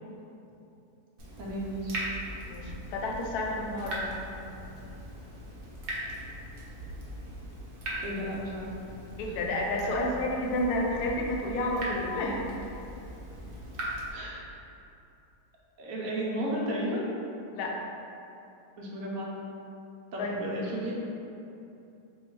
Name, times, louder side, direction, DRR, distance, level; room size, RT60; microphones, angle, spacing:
Water tap faucet / Drip, 1.2-14.1, right 1 dB, 50° right, 0.7 m, -40 dB
voice 1, 1.4-1.9 8.0-8.7 14.1-14.5 15.8-17.1 18.8-19.3 20.1-20.9, equal, 70° right, -4 dB, 1.1 m, -33 dB
voice 2, 2.5-4.2 9.2-12.5 17.5-17.9 20.2-20.4, left 1 dB, 80° left, -1 dB, 1.1 m, -30 dB
3.4 x 2.3 x 4.3 m, 2.8 s
omnidirectional pair, 1.7 m